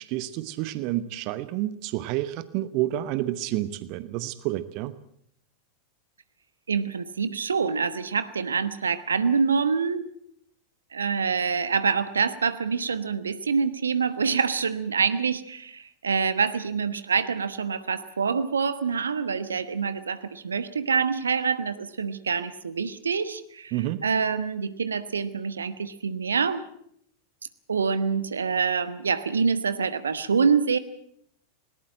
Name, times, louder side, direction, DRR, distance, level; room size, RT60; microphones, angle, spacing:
voice 1, 0.0-5.0 23.7-24.0, right 15 dB, 45° right, 15 dB, 0.9 m, -29 dB
voice 2, 6.7-10.0 10.9-23.8 24.0-26.6 27.7-30.8, right 5 dB, 70° right, 14 dB, 1.1 m, -26 dB
20.5 x 19.0 x 7.7 m, 0.71 s
figure-of-eight pair, 90°, 0 cm